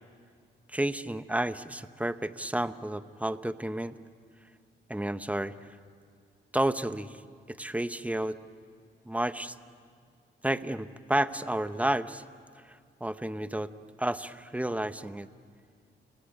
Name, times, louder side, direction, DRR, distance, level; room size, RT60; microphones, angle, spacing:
voice 1, 0.7-4.0 4.9-5.8 6.5-7.2 7.5-8.4 9.0-9.5 10.4-12.2 12.6-13.7 14.0-15.3, right 1 dB, 5° right, 12 dB, 0.9 m, -31 dB
29.5 x 19.0 x 9.2 m, 2.1 s
cardioid pair, 70°, 20 cm